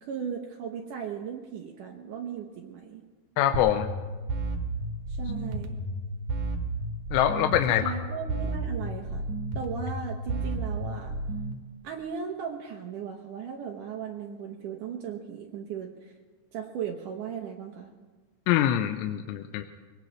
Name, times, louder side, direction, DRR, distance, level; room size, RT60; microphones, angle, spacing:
voice 1, 0.0-3.0 5.1-5.8 7.7-9.2 9.5-11.2 11.8-16.1 16.5-17.9, right 7 dB, 85° right, 1 dB, 1.8 m, -37 dB
voice 2, 3.4-3.9 7.1-7.8 18.5-19.6, left 11 dB, 80° left, 7 dB, 2.7 m, -24 dB
sound 1, 3.5-11.5, right 2 dB, 65° right, 2.1 m, -32 dB
23.5 x 18.5 x 3.2 m, 1.4 s
omnidirectional pair, 5.2 m